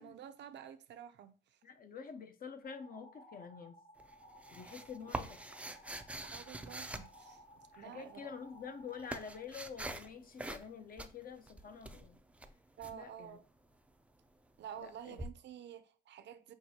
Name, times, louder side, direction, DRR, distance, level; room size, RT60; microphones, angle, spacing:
voice 1, 0.0-1.6 6.2-7.4 7.8-8.3 12.8-13.4 14.6-16.5, right 9 dB, 65° right, 0.5 m, -50 dB
voice 2, 1.6-3.8 4.5-5.4 7.7-12.2 12.9-13.4 14.8-15.2, left 6 dB, 45° left, 0.7 m, -48 dB
sound 1, 2.6-9.4, equal, 20° left, 1.0 m, -58 dB
sound 2, 4.0-7.8 8.5-10.1 10.4-10.7 11.0-12.9 15.2-15.3, right 1 dB, 5° right, 0.4 m, -45 dB
5.9 x 2.3 x 2.8 m
cardioid pair, 90°, 20 cm